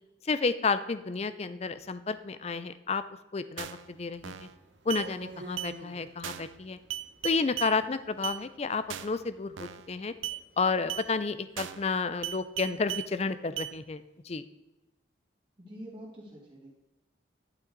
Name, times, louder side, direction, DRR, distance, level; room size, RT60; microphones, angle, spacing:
voice 1, 0.2-3.0 3.3-4.5 4.9-6.8 7.2-10.1 10.6-14.4, left 4 dB, 35° left, 13 dB, 0.4 m, -31 dB
sound 1, 3.6-3.9 4.2-4.5 4.9-5.1 5.6-5.7 6.2-6.5 6.9-7.7 8.2-8.4 8.9-9.2 9.6-9.9 10.2-10.4 10.9-11.1 11.6-11.9 12.2-13.1 13.6-13.7, right 12 dB, 85° right, 0.5 m, -37 dB
sound 2, 3.8-11.8, right 2 dB, 60° right, 1.0 m, -52 dB
voice 2, 15.6-16.7, equal, 25° right, -5 dB, 2.6 m, -46 dB
11.0 x 5.8 x 3.9 m, 1.0 s
head